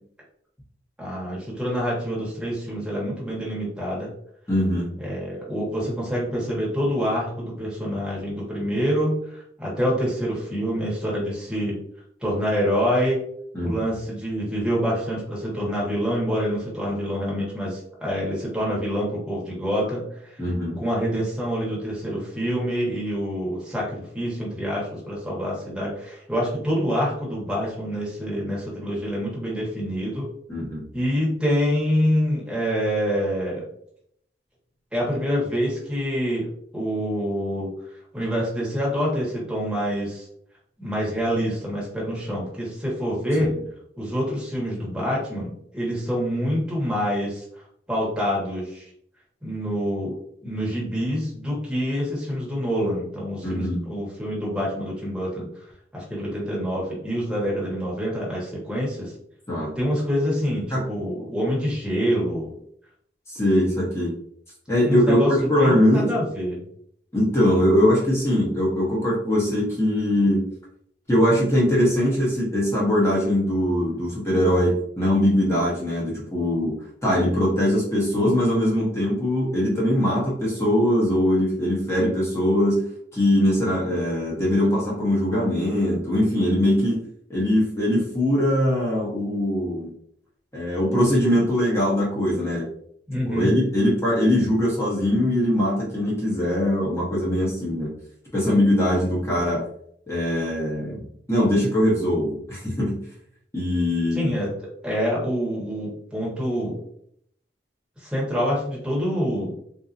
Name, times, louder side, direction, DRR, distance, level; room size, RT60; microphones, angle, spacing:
voice 1, 1.0-4.1 5.0-11.7 12.2-13.2 13.6-20.4 20.8-30.3 30.9-33.6 34.9-37.7 38.1-40.3 40.8-43.5 44.0-47.4 47.9-48.9 49.4-55.5 55.9-59.1 59.8-62.5 64.8-66.6 93.1-93.5 104.1-104.5 104.8-106.8 108.0-109.5, equal, 5° right, -6 dB, 1.2 m, -26 dB
voice 2, 4.5-4.9 13.5-13.9 20.4-20.8 30.5-30.8 43.4-43.5 53.4-53.8 59.5-59.7 60.7-60.8 63.3-64.1 64.7-66.1 67.1-70.4 71.1-76.7 77.0-82.8 83.1-87.0 87.3-89.9 90.5-92.7 93.3-97.9 98.3-99.6 100.1-103.0 103.5-104.3, left 1 dB, 15° left, -6 dB, 1.0 m, -21 dB
3.8 x 2.7 x 2.5 m, 0.69 s
head